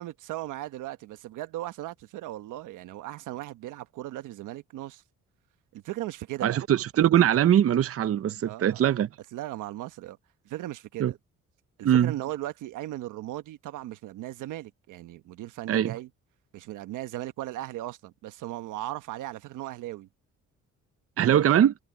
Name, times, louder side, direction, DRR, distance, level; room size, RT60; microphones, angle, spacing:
voice 1, 0.0-5.0 5.7-6.6 8.4-8.8 9.3-10.2 10.4-11.2 11.8-16.1 16.5-20.1 21.2-21.5, right 15 dB, 90° right, 1.2 m, -37 dB
voice 2, 6.4-9.1 11.0-11.1 11.8-12.1 15.7-15.9 21.2-21.7, right 10 dB, 50° right, 0.7 m, -22 dB
cardioid pair, 90°, 30 cm